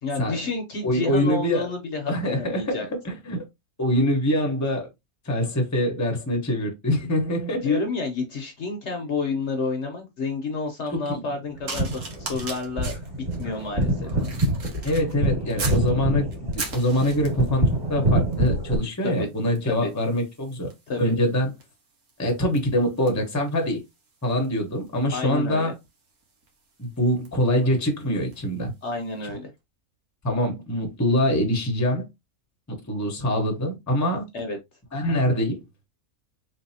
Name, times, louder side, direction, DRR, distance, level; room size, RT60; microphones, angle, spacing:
voice 1, 0.0-2.8 7.6-11.9 12.2-12.9 13.4-14.1 19.0-19.3 19.7-19.9 20.9-21.1 25.1-25.7 28.8-29.5 34.3-34.6, left 4 dB, 55° left, 1.0 m, -29 dB
voice 2, 0.8-1.7 2.1-2.8 3.0-3.4 3.8-4.9 5.3-7.8 10.9-11.2 14.8-16.3 16.5-17.6 17.9-20.7 21.0-21.5 22.2-23.8 24.2-25.7 26.8-28.7 30.2-32.0 32.7-34.2 34.9-35.6, equal, 15° left, 0.9 m, -24 dB
sound 1, 11.5-18.8, right 1 dB, 25° right, 2.0 m, -26 dB
sound 2, 11.7-15.9 16.3-17.6 18.3-18.6 18.9-28.5 29.2-29.4, right 4 dB, 85° right, 1.7 m, -40 dB
3.9 x 3.3 x 2.7 m
omnidirectional pair, 1.5 m